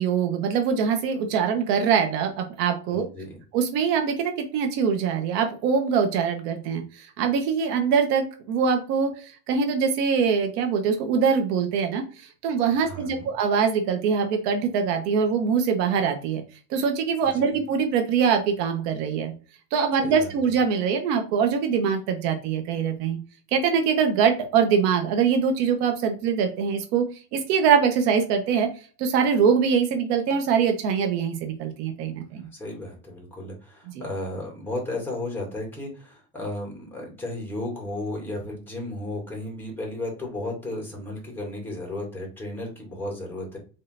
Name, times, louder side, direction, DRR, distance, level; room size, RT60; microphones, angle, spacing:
voice 1, 0.0-3.1 3.5-16.4 16.7-19.3 19.7-23.2 23.5-27.1 27.3-28.7 29.0-32.5 33.9-34.0, right 6 dB, 75° right, 5 dB, 1.2 m, -23 dB
voice 2, 2.9-3.4 12.7-13.3 17.2-17.6 20.0-20.4 32.5-43.6, left 1 dB, 5° left, -2 dB, 2.5 m, -34 dB
5.5 x 3.7 x 2.6 m, 0.37 s
supercardioid pair, 125°, 48 cm